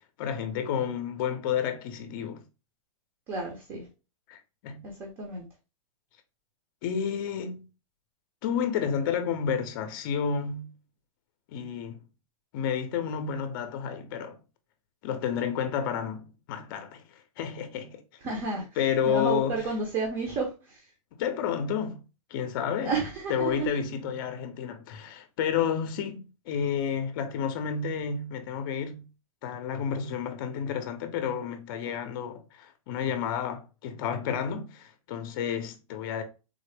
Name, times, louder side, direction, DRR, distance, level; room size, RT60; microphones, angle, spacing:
voice 1, 0.2-2.4 4.3-4.8 6.8-7.6 8.4-10.7 11.5-12.0 12.5-14.4 15.0-17.0 17.4-18.0 18.8-19.6 21.2-22.0 22.3-23.0 23.3-29.0 29.4-36.2, left 7 dB, 40° left, 0.6 m, -30 dB
voice 2, 3.3-3.8 5.0-5.4 18.2-18.6 19.1-20.8 22.8-23.7, right 4 dB, 25° right, 0.7 m, -31 dB
3.7 x 2.0 x 3.2 m
hypercardioid pair, 155°, 18 cm